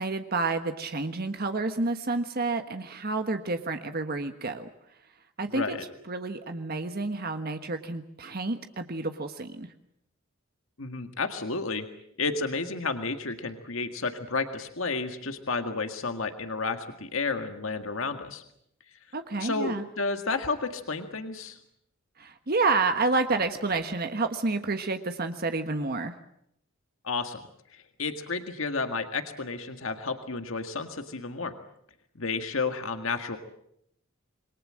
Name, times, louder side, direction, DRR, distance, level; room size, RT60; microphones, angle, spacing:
voice 1, 0.0-4.7 5.4-5.8 6.1-9.7 19.1-19.8 22.2-26.1, right 3 dB, 45° right, 7 dB, 1.3 m, -29 dB
voice 2, 5.5-5.8 10.8-11.9 12.2-18.4 19.4-21.6 27.0-27.4 27.7-31.5 32.2-33.4, left 4 dB, 70° left, 7 dB, 1.9 m, -31 dB
27.5 x 23.0 x 7.7 m, 0.75 s
head